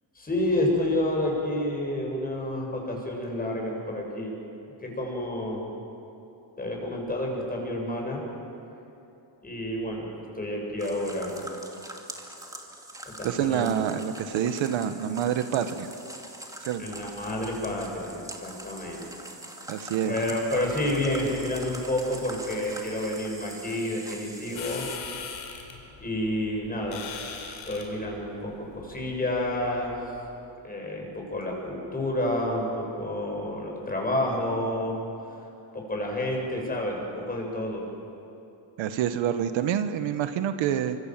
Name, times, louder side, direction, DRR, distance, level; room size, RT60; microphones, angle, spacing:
voice 1, 0.2-4.4 4.8-5.7 6.6-8.2 9.4-11.5 13.1-13.7 16.8-19.1 20.0-24.9 26.0-27.1 27.7-30.0 30.6-35.0 35.7-37.9, left 1 dB, 20° left, 0 dB, 7.5 m, -29 dB
sound 1, 10.8-25.0, right 1 dB, 10° right, 2.5 m, -43 dB
voice 2, 13.2-15.9 16.6-17.0 19.7-20.2 38.8-41.0, right 9 dB, 80° right, 9 dB, 1.5 m, -27 dB
sound 2, 24.5-30.2, left 6 dB, 80° left, 4.5 m, -42 dB
27.0 x 25.5 x 7.7 m, 2.8 s
cardioid pair, 120°, 45 cm